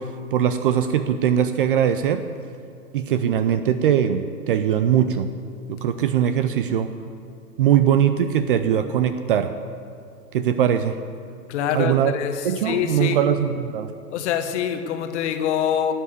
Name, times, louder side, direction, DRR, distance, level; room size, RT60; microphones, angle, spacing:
voice 1, 0.3-2.3 2.9-5.3 5.7-6.9 7.6-9.5 10.3-11.0 11.7-12.1 12.4-13.9, right 9 dB, 35° right, 10 dB, 0.5 m, -21 dB
voice 2, 11.5-13.2 14.1-15.9, left 9 dB, 45° left, 8 dB, 1.3 m, -25 dB
12.5 x 8.4 x 8.2 m, 2.4 s
hypercardioid pair, 120°, 48 cm